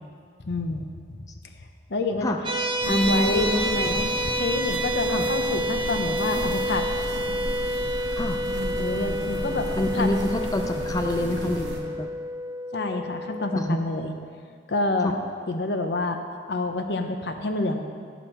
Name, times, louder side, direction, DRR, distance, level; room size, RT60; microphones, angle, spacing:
voice 1, 0.4-0.8 1.2-1.3 1.9-2.3 2.8-4.1 4.4-6.8 8.8-10.1 12.7-14.1 14.7-15.2 15.5-16.2 16.5-17.8, left 2 dB, 70° left, 6 dB, 0.7 m, -28 dB
sound 1, 2.4-13.6, equal, 25° right, 0.8 m, -29 dB
sound 2, 2.8-11.8, right 1 dB, 80° right, 1.3 m, -34 dB
voice 2, 2.9-4.0 5.1-5.3 8.2-8.5 9.7-12.1 13.6-13.8 15.0-15.1, left 1 dB, 20° left, 5 dB, 0.3 m, -26 dB
11.0 x 6.0 x 4.4 m, 2.1 s
head